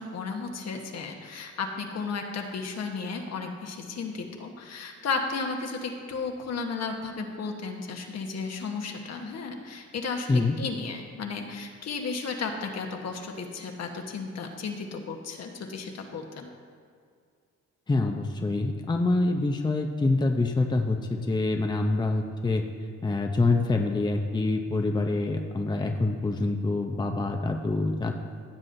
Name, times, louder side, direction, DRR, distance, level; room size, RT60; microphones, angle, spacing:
voice 1, 0.0-16.5, left 4 dB, 60° left, 3 dB, 1.3 m, -34 dB
voice 2, 17.9-22.7 23.0-28.3, left 2 dB, 15° left, 3 dB, 0.6 m, -26 dB
15.5 x 7.3 x 2.7 m, 2.1 s
cardioid pair, 90°, 30 cm